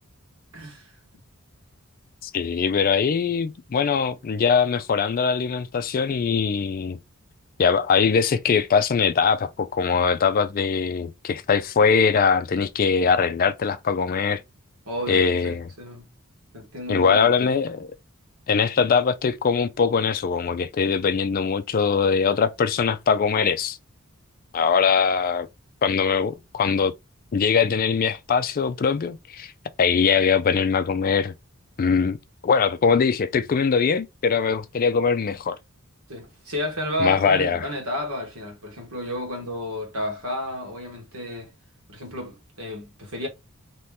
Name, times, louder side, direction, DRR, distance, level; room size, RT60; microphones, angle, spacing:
voice 1, 0.5-1.0 14.9-16.0 16.5-17.5 36.1-41.5 41.9-43.3, left 1 dB, 70° right, 1.5 m, -32 dB
voice 2, 2.2-7.0 7.6-14.4 15.1-15.7 16.9-17.9 18.5-23.8 24.5-25.5 25.8-26.9 27.3-29.5 29.8-31.3 31.8-32.2 32.4-35.6 37.0-37.7, left 6 dB, 40° left, 0.4 m, -22 dB
3.0 x 2.8 x 3.4 m
head